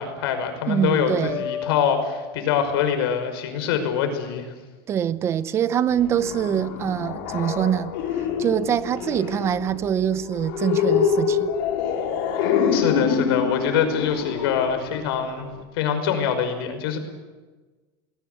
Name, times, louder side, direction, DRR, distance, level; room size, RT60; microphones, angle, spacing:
voice 1, 0.0-4.5 12.7-15.5 15.7-17.0, left 7 dB, 75° left, 5.6 m, -24 dB
voice 2, 0.7-1.4 4.9-8.0 8.4-11.5, right 9 dB, 20° right, 0.7 m, -24 dB
sound 1, 1.3-3.2, left 8 dB, 40° left, 4.5 m, -34 dB
sound 2, 5.9-15.6, left 7 dB, 55° left, 4.8 m, -26 dB
26.5 x 20.5 x 8.2 m
supercardioid pair, 180°, 13 cm